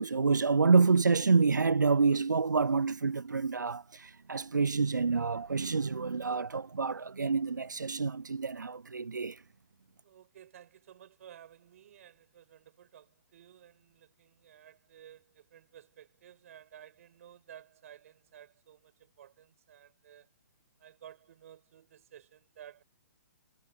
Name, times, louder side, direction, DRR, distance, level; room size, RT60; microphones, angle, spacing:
voice 1, 0.0-9.4, right 4 dB, 85° right, 0.5 m, -27 dB
voice 2, 10.0-20.3 20.8-22.8, right 10 dB, 50° right, 5.2 m, -55 dB
figure-of-eight pair, 130°, 10 cm